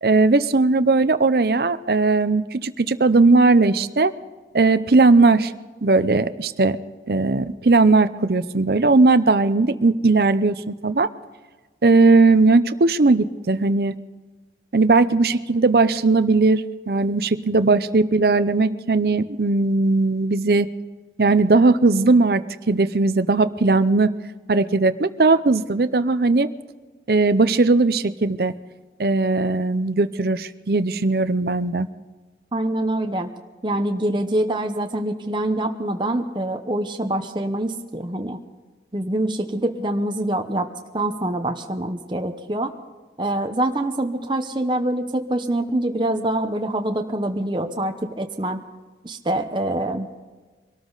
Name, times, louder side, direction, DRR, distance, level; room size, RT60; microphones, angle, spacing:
voice 1, 0.0-4.1 4.5-5.5 5.8-6.8 7.1-11.1 11.8-13.9 14.7-20.7 21.2-24.1 24.5-26.5 27.1-28.5 29.0-31.9, right 3 dB, 60° right, 13 dB, 0.6 m, -18 dB
voice 2, 32.5-33.3 33.6-38.4 38.9-40.7 40.9-42.7 43.2-48.6 49.0-50.2, right 1 dB, 25° right, 4 dB, 0.8 m, -25 dB
24.0 x 13.0 x 4.0 m, 1.3 s
head